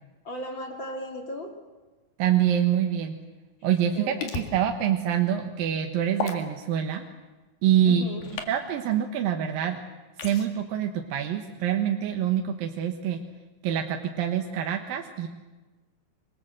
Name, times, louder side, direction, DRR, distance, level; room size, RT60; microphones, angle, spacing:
voice 1, 0.2-1.6 3.9-4.3 7.9-8.2, equal, 35° left, 2 dB, 2.6 m, -36 dB
voice 2, 2.2-3.1 3.6-7.0 7.6-8.0 8.5-9.8 10.2-13.2 13.6-15.3, right 10 dB, 70° right, 3 dB, 2.9 m, -25 dB
sound 1, 4.2-4.5 6.2-6.4 8.2-8.5 10.2-10.5, left 5 dB, 65° left, 3.7 m, -32 dB
26.5 x 24.5 x 7.6 m, 1.2 s
omnidirectional pair, 4.5 m